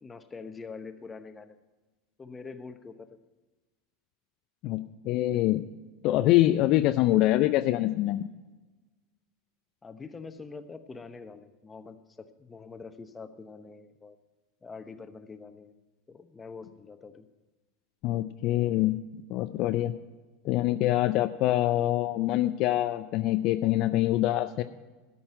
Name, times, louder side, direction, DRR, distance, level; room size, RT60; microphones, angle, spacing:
voice 1, 0.0-1.6 2.2-3.1 9.8-14.2 14.6-15.7 16.1-17.2, left 4 dB, 20° left, 9 dB, 0.9 m, -44 dB
voice 2, 4.6-5.6 6.0-8.3 18.0-19.0 19.3-19.9 20.4-24.6, left 15 dB, 55° left, 10 dB, 0.4 m, -25 dB
13.0 x 5.5 x 8.8 m, 1.2 s
hypercardioid pair, 85°, 0 cm